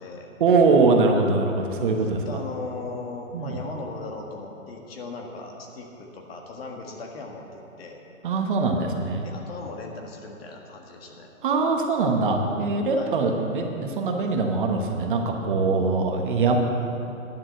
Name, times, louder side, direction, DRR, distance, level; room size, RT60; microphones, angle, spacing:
voice 1, 0.4-2.2 3.3-3.6 8.2-9.2 11.4-16.6, right 4 dB, 40° right, 2 dB, 1.1 m, -22 dB
voice 2, 1.7-8.0 9.1-11.3 13.0-13.2, left 3 dB, 45° left, 1 dB, 1.6 m, -38 dB
10.5 x 7.3 x 7.8 m, 2.9 s
hypercardioid pair, 160°, 40 cm